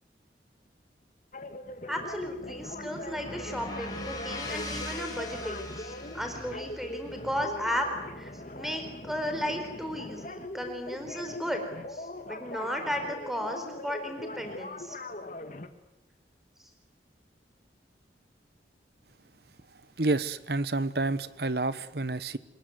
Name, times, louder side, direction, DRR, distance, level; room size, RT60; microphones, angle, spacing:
sound 1, 1.3-15.7, left 1 dB, 45° left, 2.0 m, -41 dB
sound 2, 1.6-9.9, left 2 dB, 20° left, 5.1 m, -42 dB
voice 1, 1.9-7.9 8.2-15.0, equal, ahead, 6 dB, 4.3 m, -35 dB
voice 2, 20.0-22.4, right 2 dB, 60° right, 15 dB, 1.2 m, -29 dB
27.0 x 21.0 x 9.5 m, 0.90 s
head